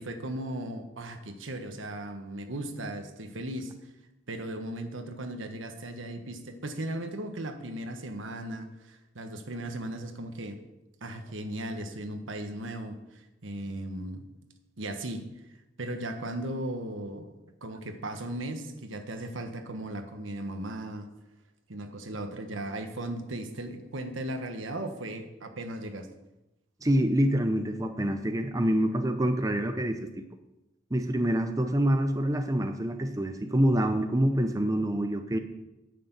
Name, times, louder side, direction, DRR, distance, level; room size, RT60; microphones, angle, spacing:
voice 1, 0.0-3.7 4.3-10.6 11.0-14.3 14.8-15.2 15.8-21.1 21.7-26.1, right 1 dB, 85° right, 6 dB, 1.4 m, -37 dB
voice 2, 26.8-30.2 30.9-35.4, right 1 dB, 20° right, 7 dB, 0.7 m, -26 dB
9.7 x 6.8 x 8.1 m, 0.97 s
head